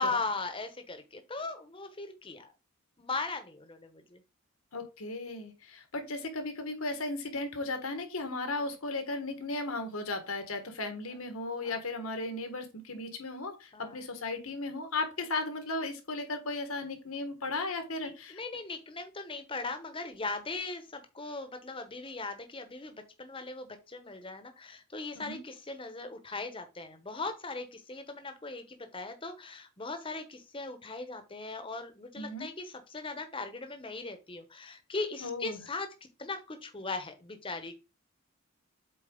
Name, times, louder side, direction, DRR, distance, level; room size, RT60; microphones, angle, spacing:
voice 1, 0.0-2.5 3.0-4.2 8.6-8.7 11.6-11.8 13.7-14.0 17.9-35.9 36.2-37.7, left 3 dB, 25° left, 8 dB, 0.9 m, -39 dB
voice 2, 4.7-18.4 25.1-25.4 32.2-32.5 35.2-35.6, left 2 dB, 80° left, 7 dB, 1.5 m, -36 dB
7.7 x 4.1 x 3.8 m, 0.29 s
head